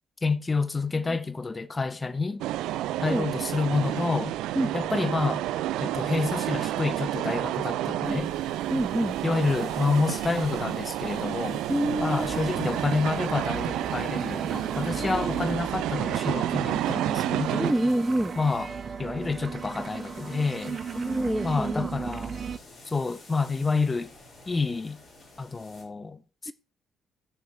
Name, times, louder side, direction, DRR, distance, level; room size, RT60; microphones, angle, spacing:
voice 1, 0.2-2.4 3.0-4.3 4.7-5.4 5.8-8.3 9.2-11.6 12.0-17.7 18.4-18.7 19.0-20.8 21.4-22.4 22.9-24.1 24.5-25.0 25.4-26.5, left 4 dB, 25° left, 0.9 m, -28 dB
sound 1, 2.4-17.7, right 13 dB, 65° right, 0.4 m, -30 dB
sound 2, 8.0-25.8, left 2 dB, 45° left, 4.7 m, -50 dB
voice 2, 8.7-9.2 11.7-12.5 15.0-15.3 15.8-15.9 16.9-17.0 17.6-18.3 21.0-21.9 26.5-26.6, right 1 dB, 5° right, 0.6 m, -28 dB
sound 3, 12.3-22.6, right 6 dB, 45° right, 0.9 m, -35 dB
15.5 x 6.3 x 3.4 m
figure-of-eight pair, 40°, 0 cm